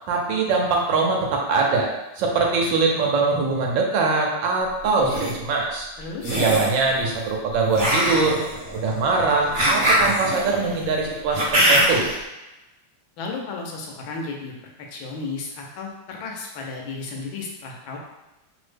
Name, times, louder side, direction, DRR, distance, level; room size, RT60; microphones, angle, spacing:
voice 1, 0.1-1.9 2.2-5.9 6.3-8.4 8.7-12.1, right 4 dB, 80° right, 0 dB, 1.3 m, -22 dB
sound 1, 4.8-5.3 6.2-6.8 7.7-12.1, equal, 45° right, 1.2 m, -22 dB
voice 2, 6.0-6.4 13.2-14.5 14.9-18.0, left 4 dB, 85° left, 0 dB, 1.4 m, -33 dB
3.4 x 2.0 x 3.2 m, 1.0 s
omnidirectional pair, 2.1 m